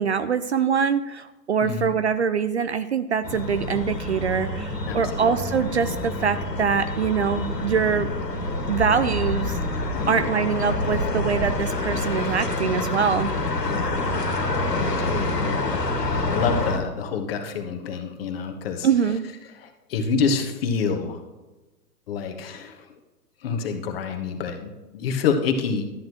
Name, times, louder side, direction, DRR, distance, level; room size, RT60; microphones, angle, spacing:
voice 1, 0.0-8.1 8.7-9.6 10.1-13.3 18.8-19.2, right 6 dB, 45° right, 11 dB, 0.5 m, -24 dB
sound 1, 3.2-16.8, left 2 dB, 80° left, 2.0 m, -27 dB
voice 2, 4.9-5.3 9.9-10.3 13.6-14.0 14.7-18.9 19.5-21.2 22.1-22.9 23.4-25.9, left 5 dB, 35° left, 5 dB, 1.4 m, -28 dB
13.0 x 9.2 x 3.1 m, 1.1 s
figure-of-eight pair, 120°, 48 cm